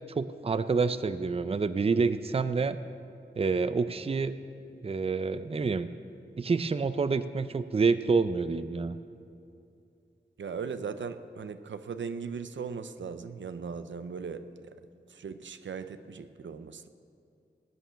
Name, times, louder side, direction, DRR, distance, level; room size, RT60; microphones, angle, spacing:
voice 1, 0.2-2.8 3.4-4.3 4.8-5.9 6.4-9.0, right 4 dB, 30° right, 13 dB, 0.4 m, -28 dB
voice 2, 10.4-14.8 15.1-16.9, right 5 dB, 85° right, 11 dB, 0.6 m, -38 dB
17.5 x 9.1 x 5.7 m, 2.5 s
wide cardioid pair, 90°, 19 cm